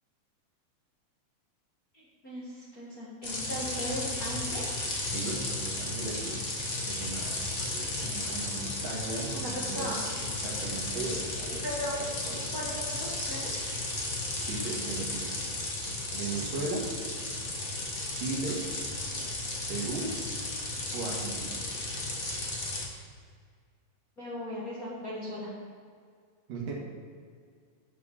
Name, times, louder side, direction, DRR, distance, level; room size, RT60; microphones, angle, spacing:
voice 1, 1.9-4.6 9.3-10.0 11.6-12.0 12.5-13.7 24.2-25.5, equal, 35° left, -7 dB, 1.6 m, -38 dB
sound 1, 3.2-22.9, left 2 dB, 85° left, 0.7 m, -34 dB
voice 2, 5.0-6.5 6.9-7.4 7.7-11.7 12.1-12.5 14.4-15.4 16.1-16.9 18.1-18.7 19.7-20.2 20.9-21.6 26.5-26.8, right 3 dB, 65° right, -3 dB, 3.3 m, -37 dB
8.3 x 7.0 x 7.2 m, 2.1 s
omnidirectional pair, 4.2 m